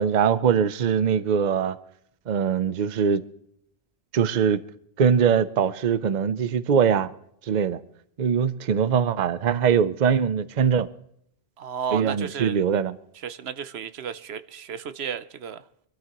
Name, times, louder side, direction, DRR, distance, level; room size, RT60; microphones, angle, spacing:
voice 1, 0.0-1.8 2.3-3.2 4.1-4.6 5.0-7.1 7.5-7.8 8.2-10.9 11.9-12.9, right 7 dB, 50° right, 0.7 m, -22 dB
voice 2, 11.6-12.6 13.2-15.6, right 8 dB, 80° right, 1.0 m, -33 dB
24.5 x 13.5 x 3.0 m
omnidirectional pair, 1.1 m